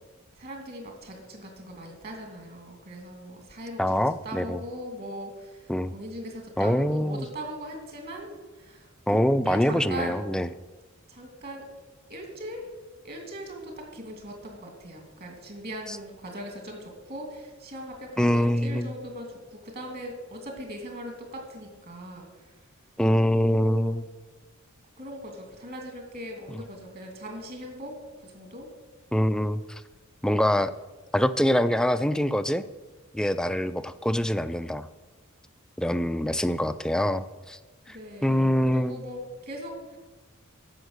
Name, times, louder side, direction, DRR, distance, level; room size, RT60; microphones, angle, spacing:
voice 1, 0.4-8.3 8.5-9.2 9.4-10.3 11.1-11.6 12.1-12.7 13.0-22.5 23.2-24.0 25.0-28.7 37.9-40.0, equal, 45° right, 2 dB, 2.7 m, -40 dB
voice 2, 3.8-4.6 5.7-5.9 6.6-7.3 9.1-10.5 15.9-16.0 18.2-18.9 23.0-24.0 29.1-29.8 30.2-30.7 31.1-32.6 33.1-34.9 35.8-37.6 37.9-38.0 38.2-39.0, equal, 5° left, 12 dB, 0.4 m, -24 dB
11.0 x 7.1 x 8.0 m, 1.3 s
head